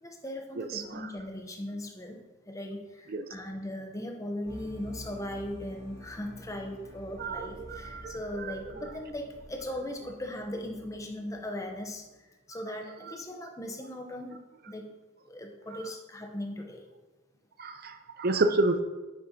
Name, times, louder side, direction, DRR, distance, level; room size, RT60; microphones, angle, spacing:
voice 1, 0.0-12.0 12.5-14.9 15.3-16.9, left 1 dB, 15° left, 2 dB, 0.7 m, -38 dB
voice 2, 0.6-1.1 3.1-3.2 7.2-8.6 13.1-13.2 17.6-18.8, right 2 dB, 45° right, 9 dB, 0.5 m, -30 dB
sound 1, 4.4-12.2, equal, 30° right, 1.9 m, -49 dB
9.6 x 6.2 x 2.8 m, 1.1 s
head